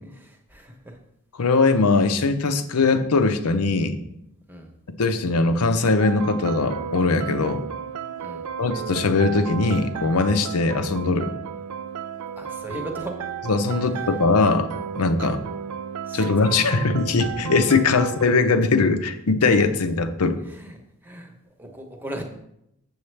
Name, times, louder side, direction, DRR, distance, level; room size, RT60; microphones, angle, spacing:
voice 1, 0.0-1.0 4.5-4.7 8.2-8.5 12.4-13.1 15.2-15.3 16.1-16.3 16.7-16.8 20.5-20.8 21.0-22.2, right 1 dB, 10° right, 3 dB, 0.9 m, -38 dB
voice 2, 1.4-4.0 5.0-7.6 8.6-11.3 13.5-14.7 15.0-15.4 16.1-20.4, left 3 dB, 90° left, 9 dB, 0.7 m, -20 dB
sound 1, 6.0-18.2, right 7 dB, 85° right, 0.4 m, -33 dB
7.2 x 7.1 x 3.3 m, 0.78 s
head